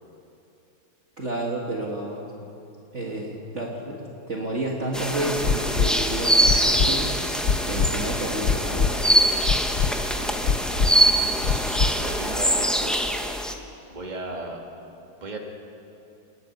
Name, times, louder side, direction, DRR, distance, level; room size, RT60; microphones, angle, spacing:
voice 1, 1.2-2.2 2.9-7.1 7.6-9.1, right 1 dB, 40° right, -2 dB, 2.0 m, -30 dB
sound 1, 4.9-12.3, left 2 dB, 40° left, 1.7 m, -42 dB
sound 2, 4.9-13.5, right 1 dB, ahead, 0.6 m, -23 dB
sound 3, 5.4-5.9 6.4-6.9 7.4-7.9 8.4-8.9 9.4-9.9 10.4-10.9 11.4-11.9 12.4-12.5, left 6 dB, 65° left, 0.6 m, -22 dB
voice 2, 10.0-10.6 11.3-13.0 13.9-14.6 15.2-15.4, right 2 dB, 20° right, 0 dB, 2.1 m, -36 dB
29.0 x 9.7 x 9.3 m, 2.9 s
omnidirectional pair, 2.1 m